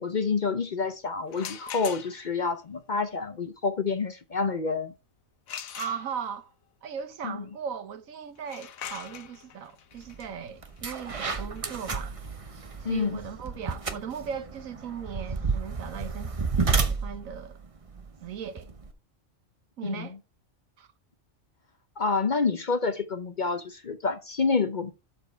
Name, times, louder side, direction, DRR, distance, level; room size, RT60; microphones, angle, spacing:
voice 1, 0.0-4.9 7.2-7.4 12.8-13.2 19.8-20.2 22.0-24.9, left 4 dB, 45° left, 0.7 m, -28 dB
sound 1, 1.3-2.4 5.5-6.5 8.4-14.0, left 8 dB, 90° left, 1.3 m, -43 dB
voice 2, 5.7-6.5 6.8-12.2 12.8-17.6 18.2-18.7 19.8-20.2 20.8-20.9, right 7 dB, 85° right, 1.4 m, -38 dB
sound 2, 10.1-10.3 10.6-18.9, right 4 dB, 30° right, 0.8 m, -31 dB
12.5 x 4.4 x 4.5 m
omnidirectional pair, 1.4 m